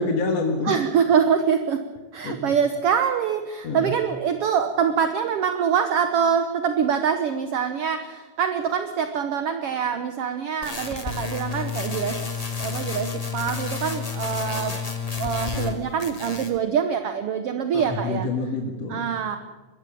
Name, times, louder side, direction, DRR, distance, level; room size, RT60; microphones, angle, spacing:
voice 1, 0.0-0.8 2.2-2.4 3.6-3.9 17.7-19.1, left 3 dB, 55° left, 3 dB, 2.5 m, -26 dB
voice 2, 0.7-1.8 2.1-12.2 12.6-14.8 15.2-18.3 18.9-19.4, right 7 dB, 70° right, 8 dB, 1.4 m, -24 dB
sound 1, 10.6-15.7 16.0-16.6, left 5 dB, 15° left, 1.3 m, -30 dB
21.5 x 15.5 x 8.6 m, 1.3 s
omnidirectional pair, 3.9 m